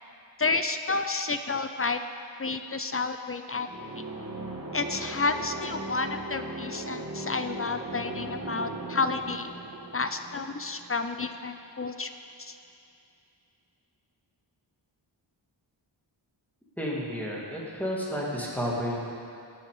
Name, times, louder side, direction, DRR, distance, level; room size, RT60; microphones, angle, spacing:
voice 1, 0.4-2.0 2.4-3.7 4.7-9.5 9.9-12.1 12.4-12.5, left 3 dB, 30° left, 8 dB, 0.4 m, -30 dB
sound 1, 3.7-11.3, right 2 dB, 35° right, 1.6 m, -38 dB
voice 2, 16.8-19.0, equal, 5° left, -4 dB, 2.1 m, -31 dB
18.0 x 7.0 x 4.9 m, 2.6 s
wide cardioid pair, 130°, 45 cm